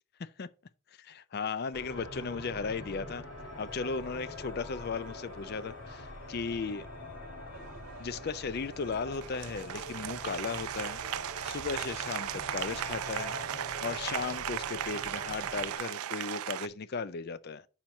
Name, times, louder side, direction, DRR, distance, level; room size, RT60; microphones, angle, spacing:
voice 1, 1.0-3.2 3.6-6.9 8.0-11.0 11.4-13.4 13.8-17.7, left 5 dB, 45° left, 0.4 m, -36 dB
sound 1, 1.7-15.8, left 1 dB, 60° left, 2.1 m, -44 dB
Applause, 7.5-16.7, right 11 dB, 80° right, 0.4 m, -37 dB
5.7 x 4.5 x 6.3 m
head